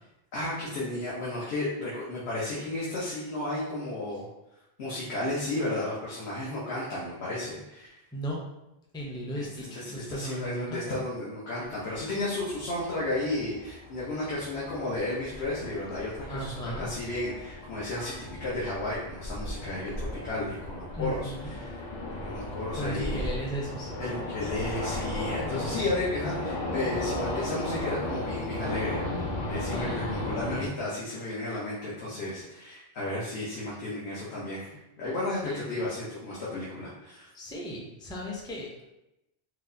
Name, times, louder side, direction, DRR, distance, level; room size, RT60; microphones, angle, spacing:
voice 1, 0.3-4.3 4.8-7.9 9.3-9.4 9.7-21.3 21.6-21.8 22.1-23.3 24.0-37.3, left 2 dB, 80° left, -7 dB, 1.1 m, -33 dB
voice 2, 8.9-11.0 16.3-16.9 21.0-21.6 22.7-23.9 25.5-25.9 29.7-30.0 35.4-35.7 37.3-38.8, equal, 5° left, -2 dB, 0.3 m, -36 dB
sound 1, 11.6-30.7, left 1 dB, 55° left, 0.6 m, -35 dB
4.6 x 2.0 x 2.6 m, 0.90 s
omnidirectional pair, 1.1 m